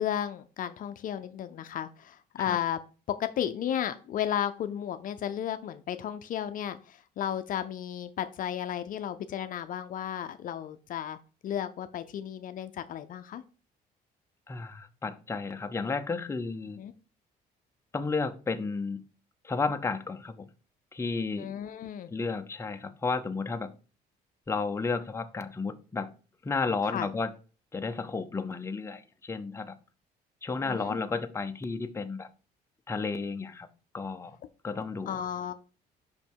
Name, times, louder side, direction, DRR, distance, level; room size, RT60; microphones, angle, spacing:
voice 1, 0.0-2.8 3.1-13.4 16.8-16.9 21.4-22.1 26.9-27.1 30.6-31.0 35.1-35.5, left 10 dB, 55° left, 0.5 m, -33 dB
voice 2, 14.5-16.8 17.9-19.0 19.4-20.5 20.9-21.5 22.1-23.7 24.5-26.1 26.4-27.3 27.7-29.8 30.4-32.3 32.9-33.7 33.9-34.4 34.6-35.2, left 4 dB, 15° left, 0.7 m, -32 dB
5.4 x 5.3 x 4.6 m
cardioid pair, 110°, 17 cm